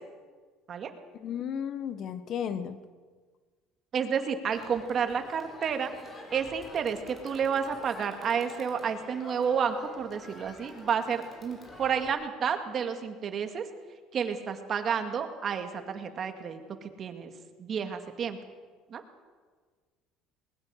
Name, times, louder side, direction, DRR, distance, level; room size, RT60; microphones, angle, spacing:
voice 1, 1.2-2.8, left 8 dB, 50° left, 12 dB, 1.3 m, -34 dB
voice 2, 3.9-5.9 6.3-13.6 14.1-17.3 17.6-18.4 18.9-19.0, right 7 dB, 40° right, 7 dB, 2.2 m, -30 dB
Crowd, 4.5-12.1, left 2 dB, 25° left, 4.8 m, -47 dB
21.0 x 20.5 x 6.6 m, 1.5 s
cardioid pair, 110°, 0 cm